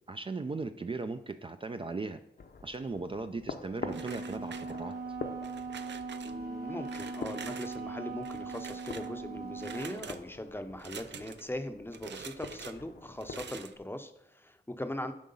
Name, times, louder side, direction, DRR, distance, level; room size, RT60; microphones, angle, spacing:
voice 1, 0.1-2.2 2.6-4.9, right 3 dB, 30° right, 9 dB, 0.4 m, -37 dB
sound 1, 2.4-13.6, left 4 dB, 60° left, 0.7 m, -46 dB
Wind instrument woodwind instrument, 3.7-10.0, right 3 dB, 65° right, 1.2 m, -40 dB
sound 2, 3.9-5.0 5.4-6.3 6.8-7.8 8.2-9.1 9.6-10.2 10.8-11.5 11.9-12.7 13.2-13.8, right 7 dB, 90° right, 0.5 m, -46 dB
voice 2, 6.2-15.1, left 1 dB, 10° left, 8 dB, 0.6 m, -40 dB
7.5 x 4.9 x 5.4 m, 0.78 s
wide cardioid pair, 105°, 18 cm